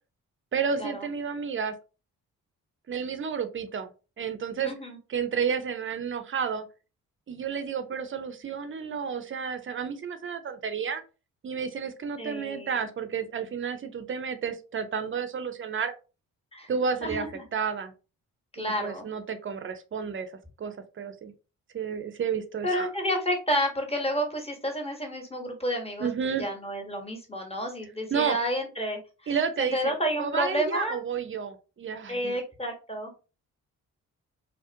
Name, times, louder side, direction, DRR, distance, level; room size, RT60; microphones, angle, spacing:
voice 1, 0.5-1.7 2.9-3.9 4.2-4.7 5.1-6.7 7.3-11.0 11.4-15.9 16.7-17.3 17.5-17.9 18.6-20.3 20.6-21.3 21.7-22.9 26.0-26.5 28.1-28.4 29.3-32.4, right 6 dB, 35° right, 9 dB, 0.5 m, -31 dB
voice 2, 4.6-5.0 12.2-12.9 16.5-16.7 17.0-17.4 18.5-19.0 22.6-26.1 26.4-29.3 29.6-31.0 32.1-33.1, equal, 15° left, 3 dB, 1.0 m, -30 dB
2.4 x 2.1 x 2.6 m, 0.32 s
hypercardioid pair, 40°, 38 cm